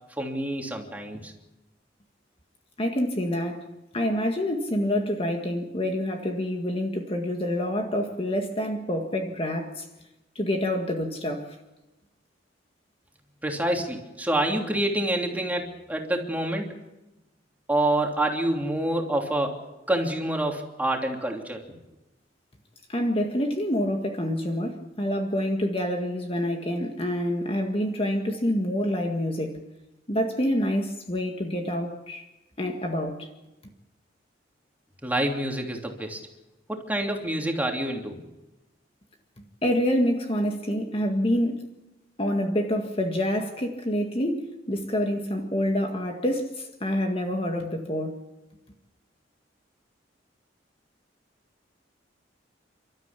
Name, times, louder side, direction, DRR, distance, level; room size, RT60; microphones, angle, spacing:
voice 1, 0.2-1.3 13.4-16.7 17.7-19.6 19.9-21.6 35.0-36.2 36.7-38.2, right 1 dB, 10° right, 3.0 m, -27 dB
voice 2, 2.8-3.7 3.9-9.9 10.4-11.6 22.9-29.6 30.1-32.2 32.6-33.3 39.6-41.7 42.2-48.2, equal, 30° left, 1.9 m, -27 dB
30.0 x 13.5 x 8.4 m
head